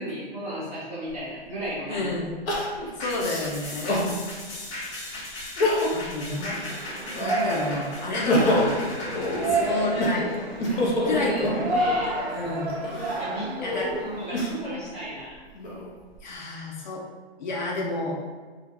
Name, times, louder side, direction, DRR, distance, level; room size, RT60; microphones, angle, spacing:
voice 1, 0.0-2.1 2.8-2.9 10.7-11.4 11.7-12.1 13.2-15.4, equal, 15° right, -11 dB, 0.5 m, -34 dB
Crying sobbing, 1.1-1.2 2.5-4.1 4.7-4.8 5.4-6.1 6.5-7.5 8.0-12.0 12.7-14.8 15.4-16.2, left 1 dB, 60° left, 0.8 m, -27 dB
voice 2, 1.9-2.3 3.0-4.0 5.9-6.6 7.2-8.8 9.5-11.6 12.3-12.7 13.6-13.9 16.2-17.0 17.4-18.2, left 2 dB, 45° left, -2 dB, 0.5 m, -30 dB
sound 1, 3.0-11.7 12.1-12.2, left 1 dB, 30° left, 0.8 m, -37 dB
Yell, 6.7-14.4, right 2 dB, 80° right, 0.6 m, -30 dB
2.3 x 2.1 x 3.0 m, 1.4 s
hypercardioid pair, 155°, 32 cm